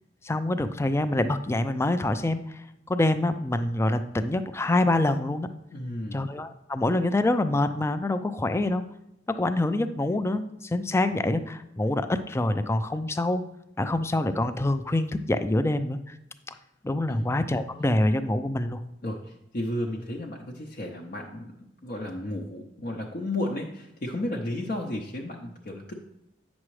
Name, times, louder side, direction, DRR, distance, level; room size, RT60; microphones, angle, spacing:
voice 1, 0.2-2.4 2.9-5.5 6.1-8.8 9.3-13.4 13.8-16.2 16.8-18.8, left 2 dB, 15° left, 10 dB, 0.4 m, -26 dB
voice 2, 5.7-6.2 17.1-17.3 19.0-25.9, left 1 dB, 50° left, -1 dB, 0.7 m, -33 dB
8.4 x 6.2 x 3.2 m, 0.85 s
head